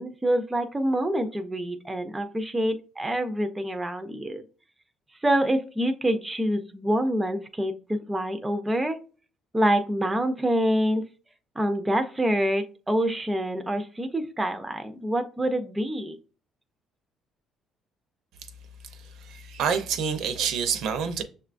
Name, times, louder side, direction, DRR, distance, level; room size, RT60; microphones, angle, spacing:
voice 1, 0.0-4.4 5.2-9.0 9.5-11.0 11.6-16.2, right 1 dB, 10° right, 0.4 m, -26 dB
voice 2, 19.0-21.2, right 6 dB, 75° right, 0.5 m, -28 dB
6.5 x 2.2 x 2.4 m
cardioid pair, 145°, 0 cm